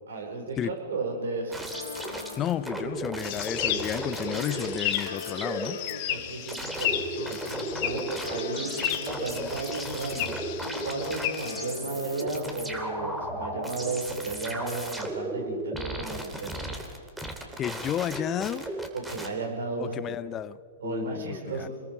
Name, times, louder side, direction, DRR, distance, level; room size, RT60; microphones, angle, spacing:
voice 1, 0.1-1.7 6.1-7.5 7.8-10.4 10.8-16.7 18.9-19.9 20.8-21.7, right 3 dB, 70° right, 4.7 m, -34 dB
sound 1, 1.5-5.9 6.5-19.3, right 1 dB, 5° right, 2.7 m, -35 dB
sound 2, 1.7-14.6, left 5 dB, 65° left, 2.7 m, -42 dB
voice 2, 2.4-5.8 17.6-18.7 19.8-20.6 20.8-21.7, left 11 dB, 25° left, 0.5 m, -32 dB
sound 3, 3.2-11.7, left 12 dB, 45° left, 1.5 m, -34 dB
27.0 x 21.0 x 4.7 m
figure-of-eight pair, 110°, 0 cm